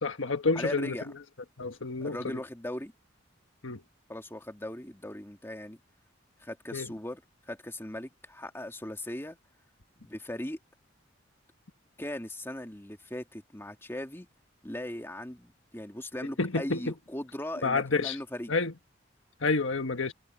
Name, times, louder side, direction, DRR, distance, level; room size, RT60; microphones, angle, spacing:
voice 1, 0.0-0.9 1.6-2.2 3.6-3.8 6.7-6.9 16.4-16.9 17.6-18.2 18.5-18.7 19.4-20.1, left 3 dB, 85° left, 1.5 m, -29 dB
voice 2, 0.5-1.1 2.0-2.9 4.1-5.8 6.4-7.2 7.5-9.4 10.0-10.6 12.0-14.3 14.6-18.5, left 1 dB, 10° left, 2.5 m, -38 dB
head